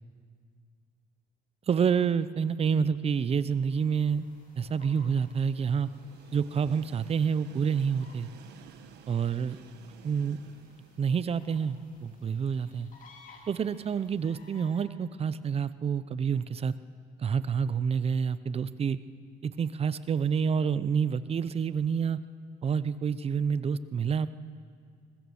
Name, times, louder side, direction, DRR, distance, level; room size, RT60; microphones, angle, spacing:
voice 1, 1.7-4.2 4.6-5.9 6.3-8.3 9.1-9.6 10.0-10.4 11.0-12.9 13.5-16.7 17.2-19.0 19.4-22.2 22.6-24.3, right 6 dB, 35° right, 16 dB, 0.7 m, -28 dB
Train, 2.2-14.8, right 10 dB, 80° right, 1.3 m, -57 dB
sound 1, 3.7-14.9, left 4 dB, 50° left, 3.3 m, -59 dB
22.0 x 21.0 x 7.1 m, 2.1 s
cardioid pair, 110°, 17 cm